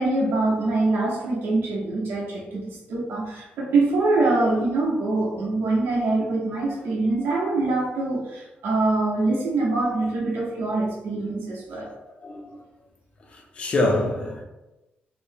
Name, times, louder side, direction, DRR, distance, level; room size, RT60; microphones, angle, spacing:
voice 1, 0.0-11.9, right 2 dB, 80° right, 0.8 m, -24 dB
voice 2, 13.6-14.4, left 2 dB, 30° left, 0.5 m, -24 dB
4.1 x 2.0 x 3.4 m
wide cardioid pair, 170°, 4 cm